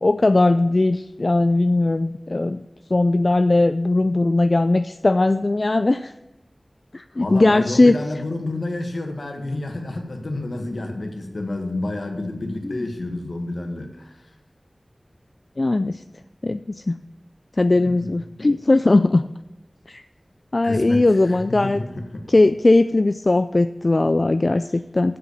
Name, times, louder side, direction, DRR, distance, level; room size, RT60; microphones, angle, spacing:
voice 1, 0.0-2.6 2.9-6.1 6.9-7.9 12.6-12.8 15.6-16.0 16.4-17.0 17.6-19.2 19.9-20.0 20.5-21.8 22.3-25.2, left 2 dB, 55° left, 11 dB, 0.3 m, -19 dB
voice 2, 7.2-14.3 17.8-18.2 20.6-22.2, left 2 dB, 75° left, 3 dB, 1.8 m, -30 dB
8.3 x 7.7 x 8.3 m, 0.98 s
wide cardioid pair, 50°, 0 cm